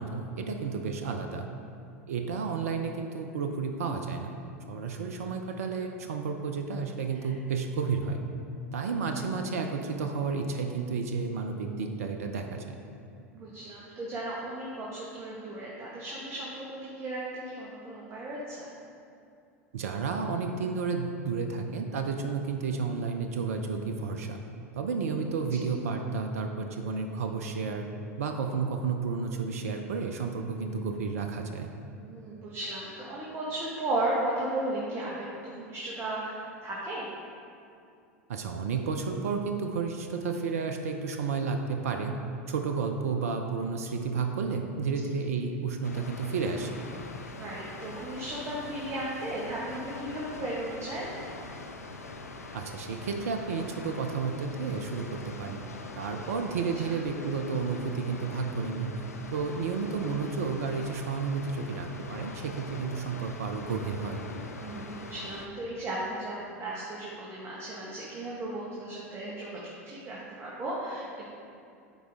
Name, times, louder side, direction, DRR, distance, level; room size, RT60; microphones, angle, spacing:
voice 1, 0.0-1.5 2.1-4.3 4.7-8.2 8.7-12.8 19.7-24.4 24.7-27.9 28.2-31.7 38.3-42.2 42.5-46.8 52.5-55.6 56.0-59.0 59.3-64.3, right 5 dB, 70° right, 5 dB, 0.6 m, -32 dB
voice 2, 13.3-18.7 25.5-25.6 32.0-37.1 47.3-51.1 56.9-57.0 64.6-71.3, right 1 dB, 35° right, -6 dB, 1.5 m, -35 dB
Water, 45.8-65.5, left 3 dB, 85° left, 0.6 m, -43 dB
12.0 x 4.8 x 3.6 m, 2.5 s
figure-of-eight pair, 85°, 8 cm